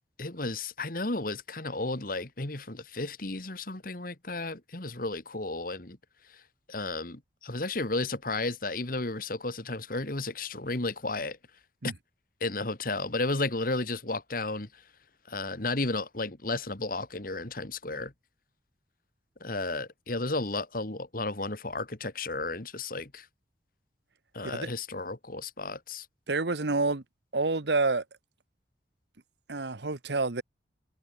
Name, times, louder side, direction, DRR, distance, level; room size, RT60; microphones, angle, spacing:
voice 1, 0.2-6.0 6.3-6.4 6.7-11.4 11.8-11.9 12.4-14.8 15.3-18.1 19.4-23.3 24.3-26.1, left 2 dB, 50° left, 2.1 m, -33 dB
voice 2, 26.3-27.0 27.3-28.0 29.5-30.4, right 3 dB, 70° right, 1.2 m, -28 dB
head